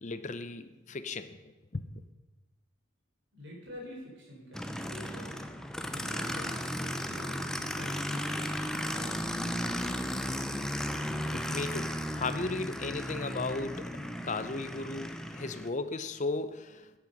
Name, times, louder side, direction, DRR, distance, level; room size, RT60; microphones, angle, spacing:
voice 1, 0.0-2.0 11.1-17.0, left 3 dB, 35° left, 0.6 m, -36 dB
voice 2, 3.3-5.5 5.9-9.3, equal, 60° right, 4.2 m, -47 dB
Aircraft, 4.5-15.7, equal, 5° left, 0.6 m, -35 dB
13.5 x 9.1 x 5.4 m
head